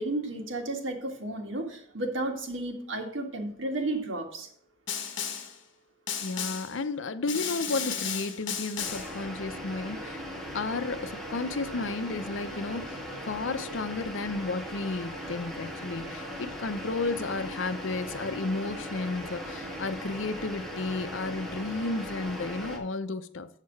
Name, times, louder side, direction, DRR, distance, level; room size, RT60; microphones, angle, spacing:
voice 1, 0.0-4.5, right 2 dB, 90° right, 1.9 m, -33 dB
Snare drum, 4.9-5.6 6.1-6.8 7.3-9.2, left 7 dB, 70° left, 1.3 m, -34 dB
voice 2, 6.2-10.2 10.5-13.0 13.3-23.5, left 3 dB, 90° left, 0.7 m, -33 dB
sound 1, 8.8-22.8, equal, ahead, 1.7 m, -39 dB
7.4 x 6.7 x 4.6 m
head